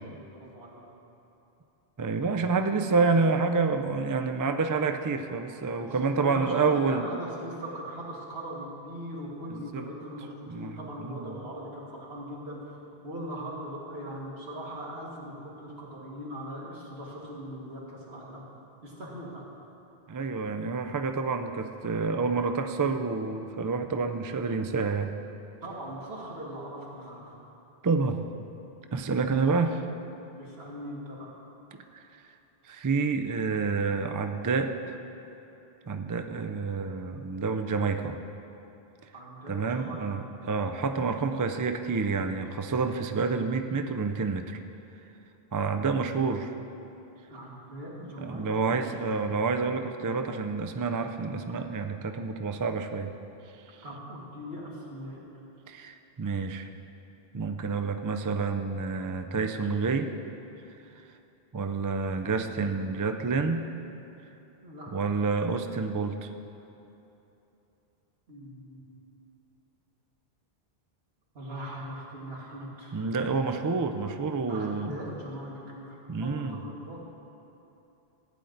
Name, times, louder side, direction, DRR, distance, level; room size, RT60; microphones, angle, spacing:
voice 1, 0.1-0.8 5.8-12.6 13.0-18.4 18.8-19.4 25.6-27.3 30.4-31.4 39.1-40.3 47.3-48.8 53.8-55.2 64.6-65.0 68.3-68.8 71.3-73.0 74.5-77.0, equal, 75° right, -4 dB, 2.3 m, -40 dB
voice 2, 2.0-7.1 9.5-9.9 10.5-11.4 20.1-25.1 27.8-28.2 28.9-29.8 31.9-32.1 32.7-34.9 35.9-38.2 39.5-44.6 45.5-46.5 48.0-53.1 55.7-56.7 57.3-60.1 61.5-63.7 64.9-66.3 72.9-74.9 76.1-76.6, right 4 dB, 35° right, 7 dB, 0.3 m, -28 dB
15.5 x 9.3 x 3.9 m, 3.0 s
omnidirectional pair, 1.1 m